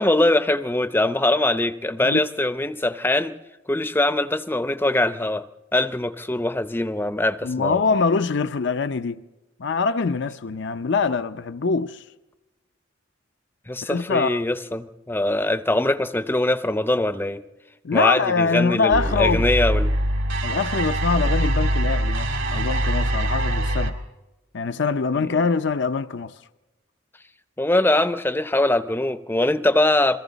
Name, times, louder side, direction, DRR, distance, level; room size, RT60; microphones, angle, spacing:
voice 1, 0.0-3.3 3.7-5.4 5.7-7.8 13.7-17.4 17.9-19.9 25.1-25.5 27.6-30.2, left 1 dB, 10° left, 0.6 m, -22 dB
voice 2, 7.4-9.2 9.6-12.0 13.8-14.4 17.8-19.4 20.4-24.0 24.5-26.3, left 4 dB, 60° left, 0.6 m, -23 dB
sound 1, 18.9-23.9, right 1 dB, 75° right, 2.5 m, -23 dB
29.0 x 22.0 x 4.0 m
head